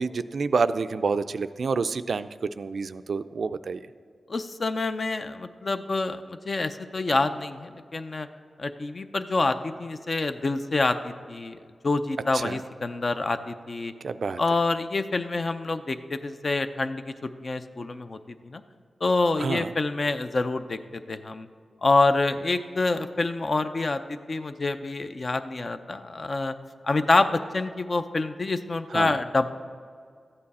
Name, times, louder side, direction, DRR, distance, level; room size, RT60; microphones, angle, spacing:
voice 1, 0.0-2.3 2.6-3.8 12.3-12.6 14.0-14.4 19.4-19.7 28.9-29.2, right 4 dB, 65° right, 12 dB, 0.3 m, -28 dB
voice 2, 4.3-8.3 8.6-11.6 11.8-13.9 14.4-18.6 19.0-21.5 21.8-26.5 26.8-29.5, left 3 dB, 45° left, 9 dB, 0.5 m, -27 dB
13.5 x 8.8 x 4.2 m, 2.2 s
wide cardioid pair, 85°, 0 cm